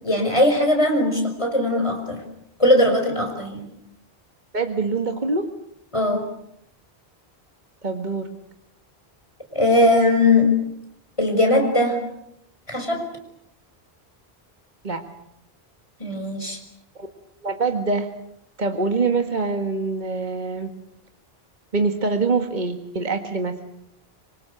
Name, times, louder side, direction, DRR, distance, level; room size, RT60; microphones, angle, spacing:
voice 1, 0.0-2.2 2.6-3.7 5.9-6.3 9.5-10.6 11.2-12.1 12.7-13.1 16.0-16.6, left 1 dB, 30° left, 4 dB, 5.6 m, -19 dB
voice 2, 4.5-5.5 7.8-8.3 14.8-15.0 17.0-17.1 17.4-18.1 18.6-20.7 21.7-23.6, right 4 dB, 45° right, 6 dB, 1.9 m, -24 dB
26.0 x 25.5 x 8.0 m, 0.75 s
omnidirectional pair, 1.1 m